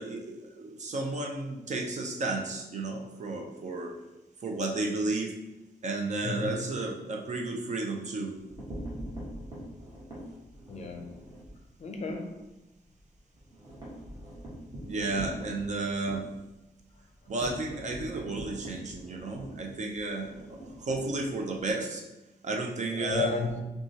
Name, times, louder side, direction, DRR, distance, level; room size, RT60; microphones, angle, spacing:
voice 1, 0.0-4.0 4.4-5.4 5.8-8.4 14.9-16.3 17.3-20.3 20.7-22.0 22.4-23.4, right 2 dB, 45° right, 1 dB, 0.5 m, -32 dB
voice 2, 6.2-6.6 10.7-11.2 11.8-12.5 22.9-23.6, left 4 dB, 45° left, 3 dB, 0.5 m, -33 dB
sound 1, 8.3-11.6 11.9-12.1 12.4-12.5 12.8-21.7, equal, 25° right, 1.3 m, -43 dB
5.8 x 2.3 x 2.8 m, 0.99 s
wide cardioid pair, 175°, 16 cm